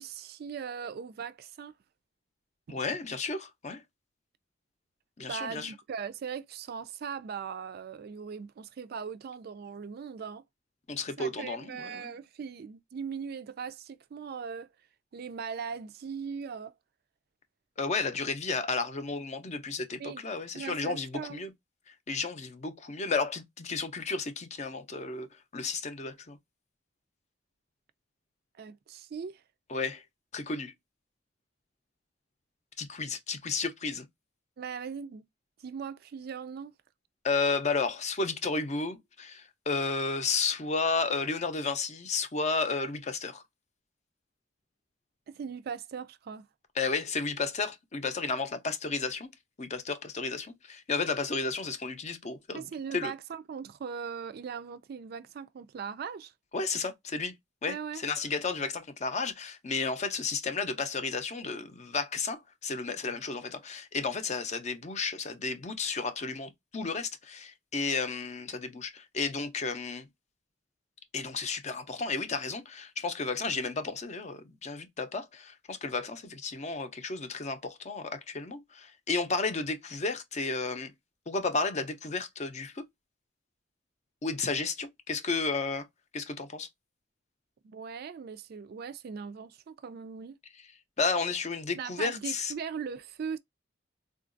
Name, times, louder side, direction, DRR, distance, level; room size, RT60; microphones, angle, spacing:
voice 1, 0.0-1.7 2.7-2.8 5.3-10.4 11.2-14.7 15.1-16.7 20.0-20.2 20.5-21.5 28.6-29.4 34.6-35.2 35.6-36.7 45.3-46.5 52.5-56.3 57.7-58.0 87.6-90.4 91.8-93.4, right 6 dB, 55° right, 0.3 m, -39 dB
voice 2, 2.7-3.8 5.2-5.7 10.9-12.1 17.8-21.5 21.9-26.4 29.7-30.0 30.3-30.7 32.8-34.1 37.2-43.4 46.8-53.1 56.5-57.3 57.6-70.1 71.1-80.9 81.3-82.8 84.2-85.9 86.1-86.7 91.0-92.5, left 4 dB, 40° left, 0.6 m, -32 dB
3.7 x 2.4 x 2.5 m
head